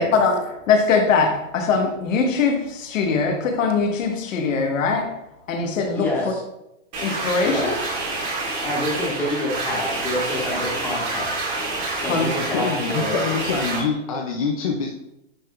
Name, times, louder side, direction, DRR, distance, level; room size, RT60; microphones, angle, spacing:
voice 1, 0.0-5.2 5.5-6.1 7.0-7.7 12.1-12.3, left 4 dB, 70° left, 1.4 m, -21 dB
voice 2, 5.9-6.4 7.4-7.8 8.6-11.3 11.9-13.2, left 1 dB, 5° left, 1.5 m, -27 dB
sound 1, 6.9-13.8, right 2 dB, 30° right, 2.3 m, -27 dB
voice 3, 12.5-14.9, left 5 dB, 30° left, 0.4 m, -25 dB
10.0 x 4.8 x 2.4 m
supercardioid pair, 165°, 40 cm